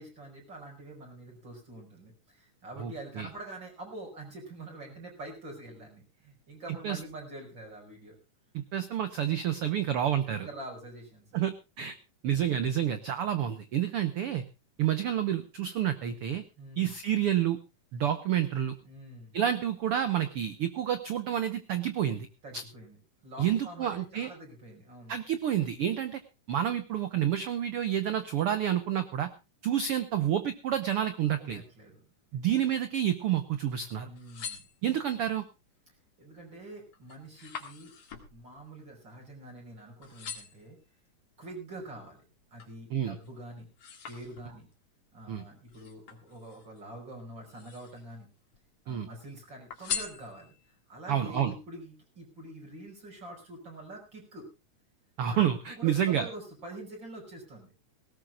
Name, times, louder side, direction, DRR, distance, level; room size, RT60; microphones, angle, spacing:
voice 1, 0.0-8.2 10.3-11.4 16.6-16.9 18.8-19.4 22.4-25.2 31.4-32.1 34.0-34.7 36.2-37.9 38.3-40.8 41.4-42.2 42.5-43.7 44.1-44.7 45.1-48.3 48.8-54.5 55.3-55.4 55.7-57.7, right 1 dB, 30° right, 0 dB, 6.0 m, -46 dB
voice 2, 2.8-3.3 6.8-7.0 8.5-10.5 11.3-11.9 12.2-14.4 14.8-16.4 16.8-17.6 17.9-18.7 19.3-22.3 22.5-22.6 23.4-24.3 25.1-26.2 26.5-29.3 29.6-31.6 32.3-34.1 34.8-35.4 42.9-43.2 45.3-45.4 48.9-49.1 51.1-51.5 55.2-56.3, right 10 dB, 90° right, 11 dB, 1.2 m, -29 dB
sound 1, 34.1-35.3 35.8-36.3 36.6-39.7 40.0-40.7 41.3-42.8 43.2-44.8 45.7-46.8 47.4-48.2 48.5-49.2 49.7-50.8 51.3-51.4, left 6 dB, 50° left, 2.9 m, -42 dB
19.0 x 18.0 x 2.4 m, 0.28 s
omnidirectional pair, 3.9 m